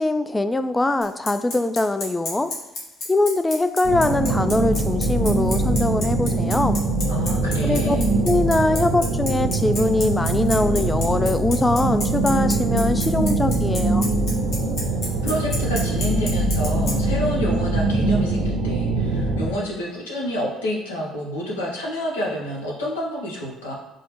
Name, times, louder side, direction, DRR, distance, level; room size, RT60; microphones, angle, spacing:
voice 1, 0.0-2.5 3.1-6.8 7.6-8.0 8.2-14.1, left 2 dB, 15° left, 10 dB, 0.3 m, -22 dB
Bicycle, 1.0-16.9, left 2 dB, 65° left, 1.1 m, -29 dB
sound 1, 3.8-19.5, right 2 dB, 80° right, 0.5 m, -22 dB
voice 2, 7.1-8.0 15.2-23.7, equal, 90° left, -3 dB, 0.7 m, -28 dB
4.6 x 2.0 x 3.0 m, 1.0 s
hypercardioid pair, 55°, 0 cm